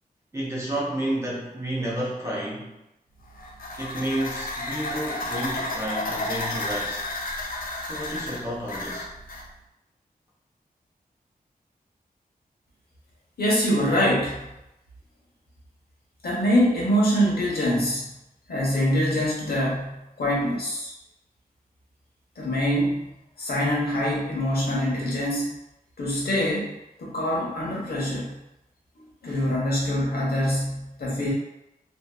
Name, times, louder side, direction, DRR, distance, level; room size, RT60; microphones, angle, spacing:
voice 1, 0.3-2.8 3.8-7.0 7.8-9.1, right 1 dB, 15° right, -6 dB, 0.6 m, -31 dB
sound 1, 3.2-9.5, left 2 dB, 65° left, 0.4 m, -32 dB
voice 2, 13.4-14.4 16.2-18.1 18.5-20.9 22.4-23.1 23.4-25.5 26.0-26.7 27.0-28.3 29.2-31.3, equal, 80° left, -4 dB, 0.8 m, -24 dB
2.6 x 2.3 x 2.2 m, 0.91 s
wide cardioid pair, 105°, 16 cm